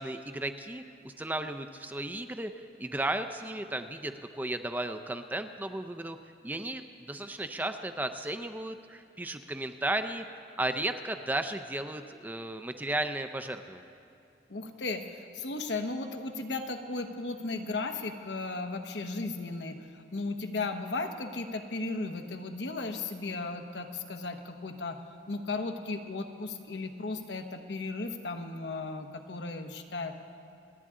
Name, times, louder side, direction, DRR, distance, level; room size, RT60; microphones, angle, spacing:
voice 1, 0.0-6.2 6.4-10.3 10.6-13.9, right 1 dB, 10° right, 8 dB, 0.4 m, -34 dB
voice 2, 14.5-25.0 25.3-30.1, left 3 dB, 80° left, 5 dB, 1.0 m, -35 dB
28.5 x 9.7 x 3.7 m, 2.6 s
head